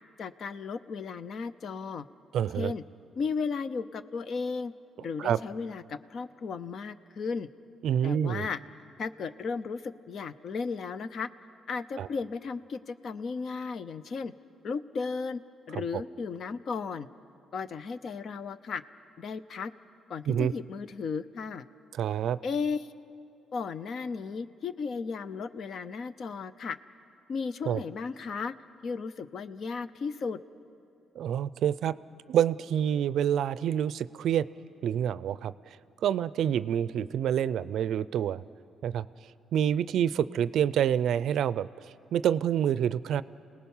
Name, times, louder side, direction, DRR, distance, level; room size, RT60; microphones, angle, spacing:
voice 1, 0.2-2.1 2.6-2.8 3.2-4.7 5.0-7.5 8.0-8.6 9.0-11.3 11.7-14.3 14.6-15.4 15.7-17.1 17.5-18.8 19.2-19.7 20.1-21.6 22.4-23.0 23.5-26.8 27.3-28.5 28.8-30.4, left 5 dB, 55° left, 14 dB, 0.6 m, -35 dB
voice 2, 2.3-2.7 5.2-5.4 7.8-8.5 12.0-12.1 15.7-15.8 20.3-20.5 21.9-22.4 27.7-27.8 31.2-31.9 32.3-34.5 34.8-35.5 36.0-38.4 38.8-39.1 39.5-43.2, right 9 dB, 75° right, 17 dB, 0.4 m, -27 dB
28.5 x 19.0 x 5.6 m, 2.6 s
cardioid pair, 90°, 0 cm